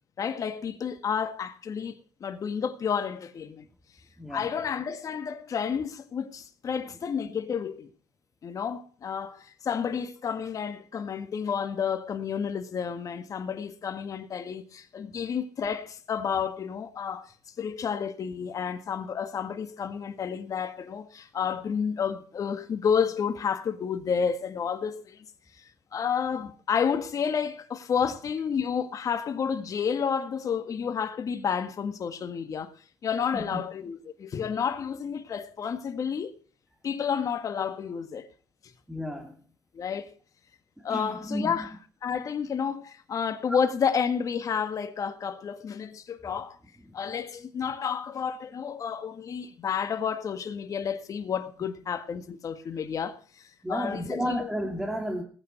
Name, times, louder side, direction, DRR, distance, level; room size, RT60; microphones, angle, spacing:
voice 1, 0.2-3.7 4.3-7.9 8.4-17.3 17.6-25.3 25.9-32.7 33.0-36.3 36.8-38.3 39.7-40.1 40.8-41.7 42.0-46.6 46.9-54.5, left 7 dB, 45° left, 1.8 m, -30 dB
voice 2, 38.9-39.4 40.8-41.6 53.6-55.2, equal, 5° right, 2.8 m, -32 dB
19.5 x 9.1 x 4.6 m
supercardioid pair, 80°, 8 cm